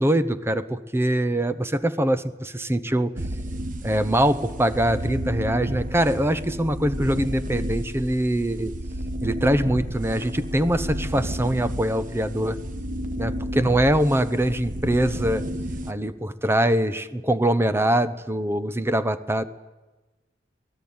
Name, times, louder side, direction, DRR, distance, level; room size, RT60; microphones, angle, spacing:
voice 1, 0.0-3.1 3.8-8.7 9.2-12.6 13.1-15.4 15.9-19.4, right 1 dB, 15° right, 12 dB, 0.9 m, -23 dB
sound 1, 3.2-15.9, equal, 45° right, 1.1 m, -32 dB
25.0 x 18.0 x 8.8 m, 1.2 s
head